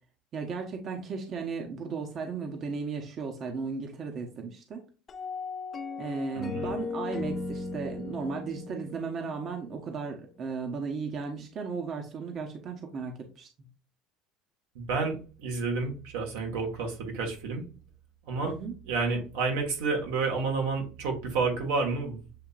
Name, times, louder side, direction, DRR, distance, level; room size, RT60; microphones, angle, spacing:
voice 1, 0.3-4.8 6.0-13.5 18.4-18.7, right 5 dB, 45° right, 3 dB, 1.0 m, -35 dB
sound 1, 5.1-10.3, left 3 dB, 30° left, 0.7 m, -37 dB
voice 2, 6.3-6.7 14.7-17.6 18.3-18.5 18.9-22.2, right 4 dB, 85° right, 1 dB, 1.5 m, -30 dB
7.6 x 2.8 x 2.4 m, 0.35 s
supercardioid pair, 100°, 0 cm